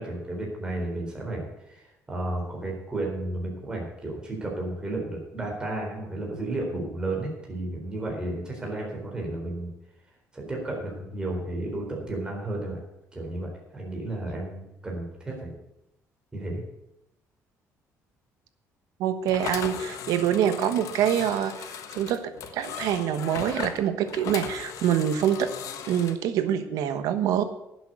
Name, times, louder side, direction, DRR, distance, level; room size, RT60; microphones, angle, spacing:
voice 1, 0.0-9.7 10.3-12.8 13.1-15.5 16.3-16.6, right 2 dB, 15° right, -1 dB, 4.0 m, -33 dB
voice 2, 19.0-25.5 25.9-27.4, right 9 dB, 85° right, 11 dB, 1.2 m, -25 dB
sound 1, 19.2-26.1, left 8 dB, 65° left, 1.3 m, -38 dB
11.0 x 7.9 x 8.0 m, 0.84 s
cardioid pair, 145°, 6 cm